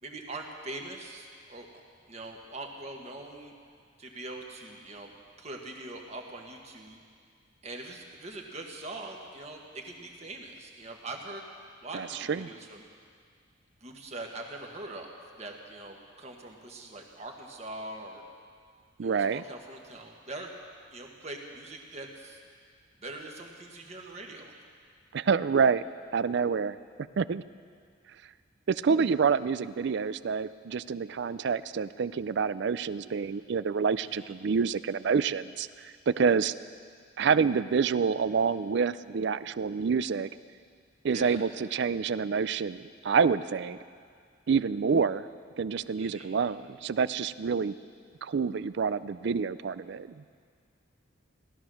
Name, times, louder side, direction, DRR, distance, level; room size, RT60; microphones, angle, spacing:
voice 1, 0.0-1.7 2.1-3.5 4.0-5.1 5.4-7.0 7.6-11.5 11.8-12.9 13.8-18.2 19.0-20.5 20.9-22.4 23.0-24.5 34.0-34.3 41.1-41.4 45.9-46.4, right 2 dB, 35° right, 1 dB, 1.5 m, -42 dB
voice 2, 11.9-12.5 19.0-19.4 25.1-25.8 26.1-26.8 27.2-27.4 28.7-36.5 37.2-40.3 41.0-43.8 44.5-45.3 45.6-47.7 48.2-50.2, right 5 dB, 60° right, 16 dB, 0.4 m, -27 dB
16.5 x 12.5 x 6.3 m, 2.1 s
head